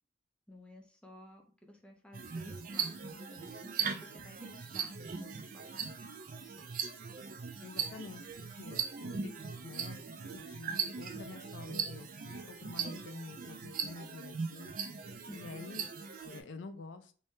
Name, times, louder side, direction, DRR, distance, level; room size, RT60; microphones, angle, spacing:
voice 1, 0.5-6.1 15.3-15.7, left 1 dB, 5° left, 2 dB, 0.6 m, -54 dB
sound 1, 2.1-16.4, right 6 dB, 45° right, 0.4 m, -39 dB
voice 2, 7.6-9.3 9.6-10.0 10.3-14.7 15.3-15.9 16.2-17.1, left 3 dB, 75° left, 9 dB, 0.4 m, -48 dB
3.3 x 2.7 x 3.2 m, 0.41 s
head